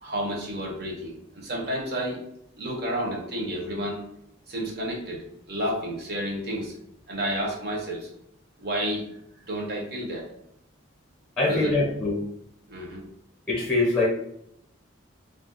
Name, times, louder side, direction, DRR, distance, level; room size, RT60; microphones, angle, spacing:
voice 1, 0.0-2.2 2.6-4.0 4.5-6.7 7.1-8.1 8.6-9.0 9.5-10.3 11.4-11.9 12.7-13.0, equal, 50° right, -1 dB, 0.8 m, -31 dB
voice 2, 11.4-12.2 13.5-14.1, left 2 dB, 5° left, -4 dB, 0.7 m, -23 dB
2.4 x 2.3 x 3.8 m, 0.73 s
head